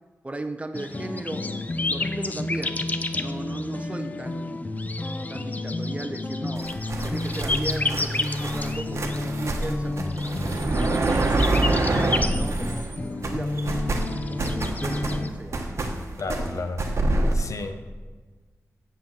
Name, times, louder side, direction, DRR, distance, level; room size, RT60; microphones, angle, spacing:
voice 1, 0.2-2.9 3.2-4.8 5.3-6.7 7.0-11.0 11.3-13.8 14.3-15.6, right 2 dB, 20° right, 8 dB, 0.6 m, -37 dB
sound 1, 0.7-15.3, left 2 dB, 30° left, 0.5 m, -29 dB
sound 2, 6.6-13.0 13.2-17.3, right 2 dB, 55° right, 1.1 m, -27 dB
voice 2, 16.2-16.8 17.3-17.9, left 3 dB, 70° left, 8 dB, 0.8 m, -32 dB
7.8 x 7.7 x 7.2 m, 1.4 s
wide cardioid pair, 135°, 6 cm